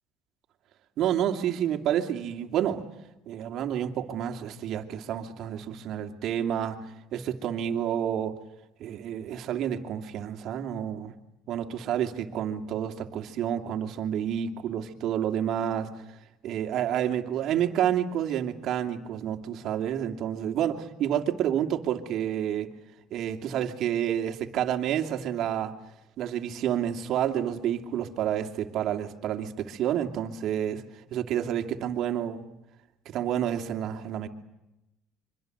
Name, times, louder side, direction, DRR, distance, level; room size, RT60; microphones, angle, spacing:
voice 1, 1.0-2.8 3.3-6.9 7.1-8.4 8.8-11.1 11.5-15.9 16.4-22.7 23.1-25.7 26.2-30.8 31.1-32.4 33.1-34.3, right 10 dB, 60° right, 6 dB, 2.6 m, -29 dB
26.0 x 24.5 x 8.0 m, 0.92 s
supercardioid pair, 100°, 0 cm